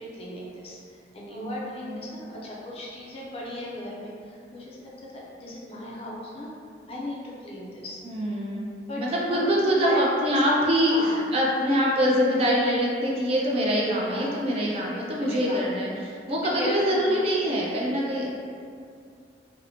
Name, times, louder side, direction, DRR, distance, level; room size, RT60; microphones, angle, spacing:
voice 1, 0.0-6.5 6.9-8.0 8.9-9.0 9.3-10.0 10.3-10.6 10.9-11.2 14.0-14.3 14.9-15.6 16.4-17.2, left 1 dB, 35° left, -4 dB, 0.4 m, -36 dB
voice 2, 8.0-8.7 9.0-10.9 11.3-18.3, equal, 35° right, -3 dB, 0.3 m, -24 dB
2.6 x 2.0 x 2.8 m, 2.3 s
head